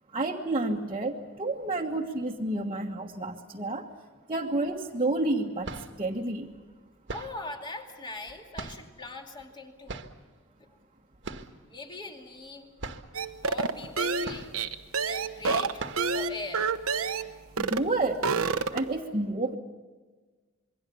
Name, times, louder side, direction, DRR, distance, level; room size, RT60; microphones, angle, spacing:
voice 1, 0.1-3.9 4.3-6.5 17.6-18.3 18.7-19.6, right 2 dB, 25° right, -2 dB, 1.4 m, -30 dB
sound 1, 4.7-4.8 5.4-6.1 7.1-7.5 8.5-9.1 9.9-10.3 11.2-11.7 11.9-12.0 12.4-12.5 12.8-13.2 14.2-14.8 15.2-15.3 15.8-16.2, right 3 dB, 60° right, 1.5 m, -40 dB
voice 2, 7.1-10.0 10.6-10.7 11.7-13.0 13.4-14.5 15.0-15.8 16.1-16.7, left 2 dB, 25° left, 2 dB, 2.6 m, -41 dB
sound 2, 13.1-17.3 17.6-17.9 18.1-19.0, right 4 dB, 90° right, 1.1 m, -28 dB
27.0 x 22.5 x 7.0 m, 1.4 s
head